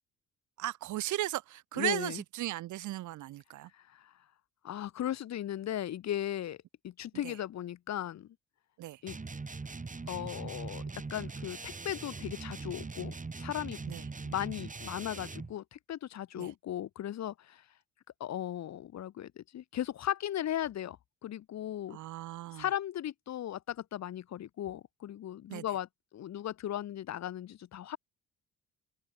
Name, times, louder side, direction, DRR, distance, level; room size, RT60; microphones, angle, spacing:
voice 1, 0.6-3.7 7.2-7.3 8.8-9.0 13.9-14.0 16.4-16.5 21.9-22.6 25.5-25.6, right 15 dB, 75° right, 0.8 m, -36 dB
voice 2, 1.8-2.2 3.7-4.1 4.6-6.6 6.8-8.3 9.0-9.2 10.1-10.8 11.1-13.8 14.3-17.6 18.2-22.0 22.5-28.0, left 11 dB, 60° left, 1.2 m, -37 dB
sound 1, 9.1-15.5, right 4 dB, 25° right, 6.8 m, -41 dB
open air
cardioid pair, 90°, 30 cm